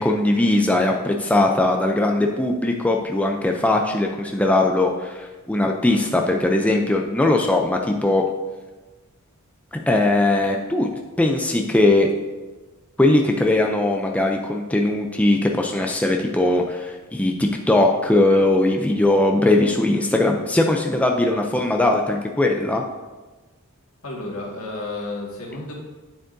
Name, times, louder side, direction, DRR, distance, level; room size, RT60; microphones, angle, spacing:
voice 1, 0.0-8.2 9.7-10.9 11.2-12.1 13.0-22.8, left 2 dB, 5° left, 1 dB, 0.4 m, -20 dB
voice 2, 24.0-25.7, left 2 dB, 75° left, -2 dB, 1.9 m, -31 dB
9.4 x 7.3 x 2.6 m, 1.2 s
head